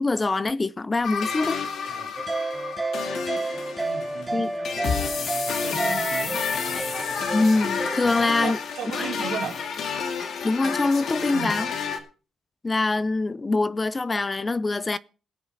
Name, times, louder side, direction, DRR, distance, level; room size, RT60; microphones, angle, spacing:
voice 1, 0.0-1.6 4.3-4.5 7.3-8.6 9.0-9.1 10.4-11.7 12.6-15.0, left 3 dB, 25° left, 0.5 m, -24 dB
sound 1, 1.0-12.0, left 6 dB, 65° left, 2.0 m, -30 dB
sound 2, 2.2-8.3, right 2 dB, 15° right, 1.2 m, -30 dB
voice 2, 3.8-7.4 8.2-9.6 11.3-11.6, right 7 dB, 80° right, 3.4 m, -37 dB
20.0 x 7.0 x 4.1 m
cardioid pair, 90°, 0 cm